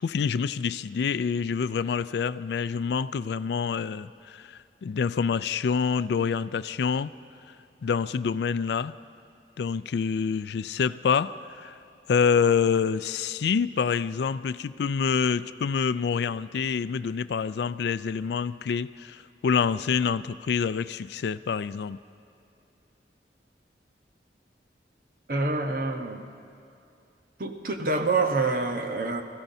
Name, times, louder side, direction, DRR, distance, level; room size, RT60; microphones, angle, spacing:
voice 1, 0.0-7.1 7.8-9.0 9.6-11.8 12.1-22.0, left 6 dB, 70° left, 0.3 m, -27 dB
voice 2, 25.3-26.2 27.4-29.2, right 3 dB, 50° right, 1.0 m, -26 dB
25.0 x 15.0 x 2.7 m
head